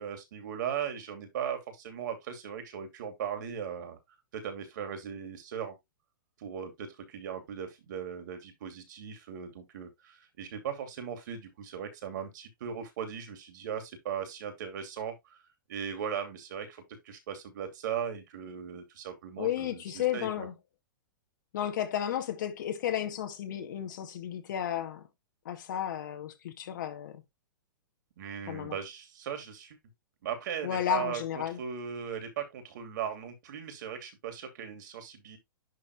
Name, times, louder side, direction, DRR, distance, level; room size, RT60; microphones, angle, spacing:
voice 1, 0.0-4.0 4.3-5.7 6.4-15.4 15.7-20.5 28.2-29.8 30.2-31.2 31.6-35.4, right 8 dB, 60° right, 2.8 m, -38 dB
voice 2, 19.4-20.5 21.5-25.0 25.5-27.2 28.5-28.8 30.6-31.6, left 10 dB, 60° left, 2.0 m, -33 dB
11.0 x 3.7 x 3.1 m
hypercardioid pair, 120°, 11 cm